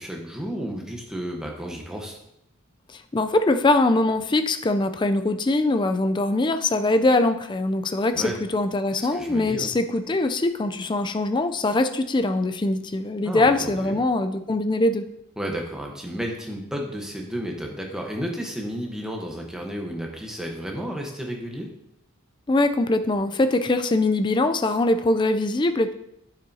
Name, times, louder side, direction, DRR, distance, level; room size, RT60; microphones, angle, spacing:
voice 1, 0.0-2.2 8.1-8.4 8.9-9.7 13.2-14.0 15.4-21.7, equal, 5° right, 0 dB, 1.0 m, -32 dB
voice 2, 2.9-15.1 22.5-25.9, left 2 dB, 20° left, 9 dB, 0.4 m, -22 dB
8.5 x 7.0 x 2.7 m, 0.80 s
head